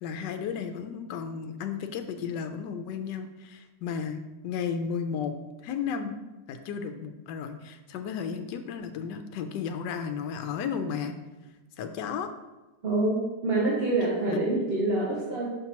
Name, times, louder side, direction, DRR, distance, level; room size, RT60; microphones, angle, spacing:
voice 1, 0.0-5.3 5.6-6.1 6.5-11.2 11.8-12.3 14.3-14.4, left 7 dB, 75° left, 7 dB, 1.1 m, -33 dB
voice 2, 12.8-15.5, right 2 dB, 40° right, -5 dB, 0.9 m, -26 dB
5.9 x 5.7 x 2.9 m, 1.1 s
omnidirectional pair, 2.0 m